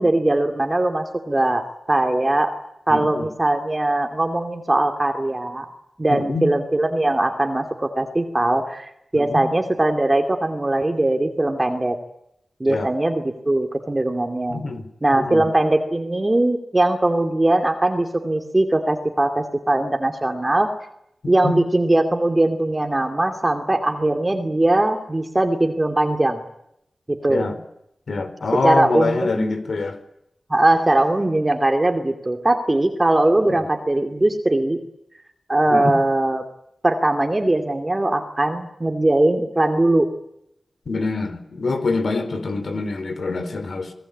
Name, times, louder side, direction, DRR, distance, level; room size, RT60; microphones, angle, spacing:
voice 1, 0.0-1.6 1.9-2.5 2.9-5.7 6.0-12.0 12.6-14.6 15.0-20.7 21.3-26.4 27.1-27.5 28.6-29.5 30.5-34.8 35.5-36.4 36.8-40.1, right 1 dB, 25° right, 5 dB, 2.5 m, -20 dB
voice 2, 2.9-3.3 6.1-6.5 9.1-9.5 12.7-12.9 14.5-14.9 15.1-15.5 21.2-21.5 27.3-27.6 28.1-30.0 33.4-33.6 35.7-35.9 40.9-43.9, left 3 dB, 70° left, 9 dB, 4.5 m, -25 dB
28.0 x 20.0 x 8.6 m, 0.79 s
wide cardioid pair, 85°, 0 cm